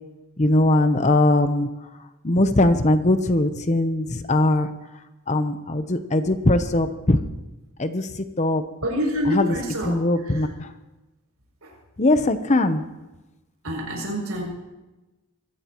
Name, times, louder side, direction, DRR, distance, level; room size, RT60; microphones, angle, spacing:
voice 1, 0.4-1.7 2.2-4.7 5.3-7.2 7.8-8.6 9.3-9.5 9.9-10.7 12.0-12.8, left 1 dB, 30° left, 9 dB, 0.8 m, -20 dB
voice 2, 8.8-10.5 11.6-11.8 13.6-14.4, equal, 85° right, -1 dB, 7.1 m, -27 dB
24.5 x 15.0 x 3.0 m, 1.1 s
head